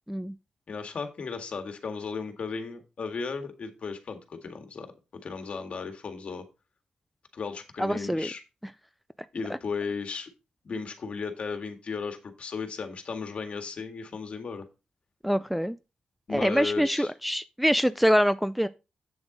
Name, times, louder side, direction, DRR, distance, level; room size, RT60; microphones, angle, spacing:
voice 1, 0.7-6.5 7.3-8.4 9.3-10.3 10.6-14.6 16.3-17.1, left 5 dB, 50° left, 1.8 m, -35 dB
voice 2, 7.8-8.3 15.2-15.8 16.3-18.7, equal, ahead, 0.4 m, -24 dB
8.1 x 7.2 x 3.9 m
cardioid pair, 105°, 3 cm